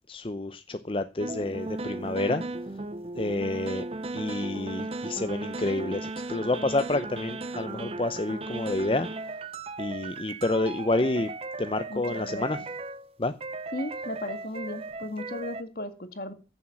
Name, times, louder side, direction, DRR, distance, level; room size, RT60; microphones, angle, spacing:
voice 1, 0.1-2.4 3.1-3.8 4.1-9.4 9.8-11.3 11.6-12.6 13.2-13.3, left 2 dB, 30° left, 0.6 m, -29 dB
sound 1, 1.2-13.1 13.4-15.6, right 2 dB, 35° right, 0.7 m, -36 dB
voice 2, 3.2-3.6 11.9-12.6 13.7-16.3, left 1 dB, 55° left, 1.9 m, -36 dB
15.0 x 7.2 x 6.0 m
head